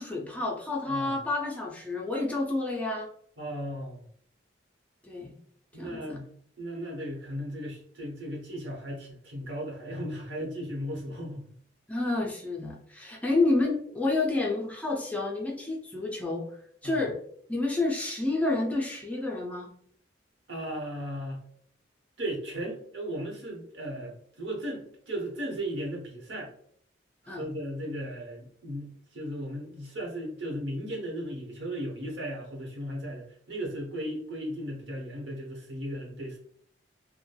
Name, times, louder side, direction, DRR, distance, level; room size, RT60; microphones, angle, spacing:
voice 1, 0.0-3.1 5.0-5.3 5.8-6.2 11.9-16.5 16.8-17.2 17.5-19.7 27.3-27.5, left 2 dB, 10° left, -2 dB, 0.4 m, -29 dB
voice 2, 3.4-4.0 5.7-6.3 6.6-11.4 16.8-17.0 20.5-21.4 22.2-26.5 27.2-36.4, equal, 80° right, -2 dB, 1.0 m, -36 dB
3.2 x 2.1 x 2.2 m, 0.63 s
head